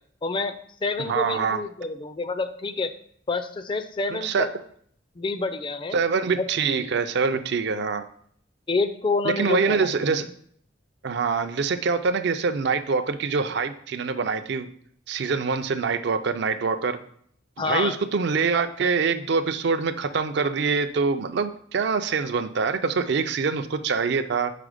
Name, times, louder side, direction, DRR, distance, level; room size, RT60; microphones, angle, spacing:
voice 1, 0.2-2.9 3.3-4.5 5.2-6.0 6.3-6.5 8.7-10.2 17.6-18.0, left 3 dB, 25° left, 10 dB, 0.4 m, -28 dB
voice 2, 1.0-1.6 4.1-4.5 5.9-8.1 9.2-10.3 11.0-14.7 15.1-17.0 17.6-24.5, right 5 dB, 55° right, 10 dB, 0.4 m, -25 dB
5.0 x 4.3 x 4.9 m, 0.63 s
head